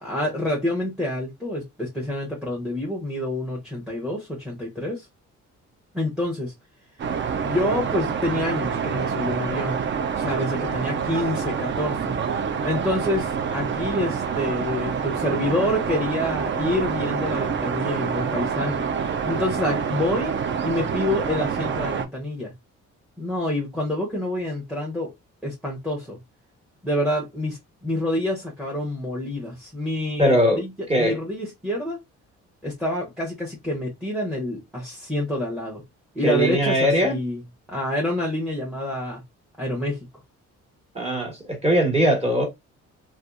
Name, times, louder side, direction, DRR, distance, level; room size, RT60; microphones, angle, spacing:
voice 1, 0.0-5.1 5.9-6.5 7.4-9.8 10.1-12.1 12.6-22.5 23.2-25.1 25.4-26.2 26.8-32.0 32.6-35.8 36.1-37.4 37.7-39.2 39.6-40.0, left 1 dB, ahead, 0.8 m, -27 dB
sound 1, 7.0-22.1, right 6 dB, 40° right, 0.4 m, -27 dB
voice 2, 30.2-30.6 30.9-31.2 36.2-37.2 40.9-42.5, equal, 20° right, 1.3 m, -20 dB
2.6 x 2.3 x 2.4 m
cardioid pair, 90°, 30 cm